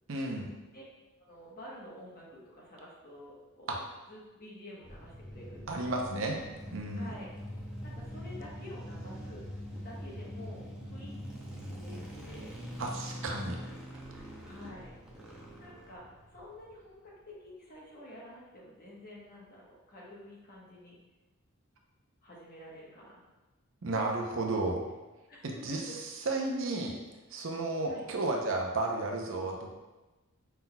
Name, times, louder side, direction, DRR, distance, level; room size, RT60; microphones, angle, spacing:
voice 1, 0.1-0.5 3.7-3.8 5.7-6.4 6.7-7.1 12.8-13.6 23.8-24.8 25.4-25.9 26.3-27.0 27.3-29.8, right 2 dB, 60° right, 1 dB, 0.7 m, -33 dB
voice 2, 1.2-3.8 4.1-6.0 6.9-7.3 7.8-9.5 9.8-12.6 14.4-15.0 15.6-21.0 22.2-23.2 24.3-24.4 25.3-26.0 27.9-28.1, left 1 dB, 45° left, -4 dB, 1.1 m, -49 dB
sound 1, 4.8-17.1, equal, 5° right, 0.6 m, -45 dB
sound 2, 5.1-12.4, left 1 dB, 35° right, 1.1 m, -46 dB
5.6 x 4.0 x 2.3 m, 1.1 s
head